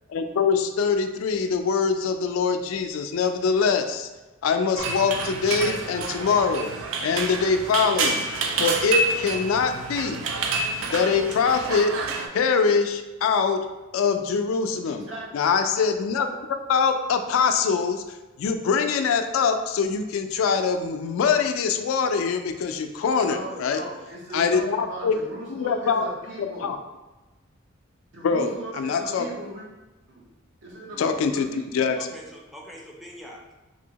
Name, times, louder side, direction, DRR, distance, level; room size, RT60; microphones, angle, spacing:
voice 1, 0.1-4.1 4.4-6.7 7.0-8.3 8.6-10.2 10.9-12.0 12.3-13.6 13.9-15.0 15.3-16.3 16.7-18.0 18.4-23.8 24.3-25.1 25.5-26.1 26.6-26.8 28.2-28.5 28.8-29.3 31.0-31.5 31.7-32.1, left 5 dB, 90° left, 7 dB, 0.3 m, -23 dB
sound 1, 4.8-12.3, right 3 dB, 85° right, 0.4 m, -28 dB
voice 2, 14.8-15.3 23.3-26.7 28.1-29.7 30.1-30.3 30.6-31.7, right 2 dB, 60° right, -3 dB, 0.8 m, -38 dB
voice 3, 32.0-33.5, equal, ahead, -2 dB, 0.4 m, -43 dB
2.8 x 2.6 x 2.8 m, 1.1 s
head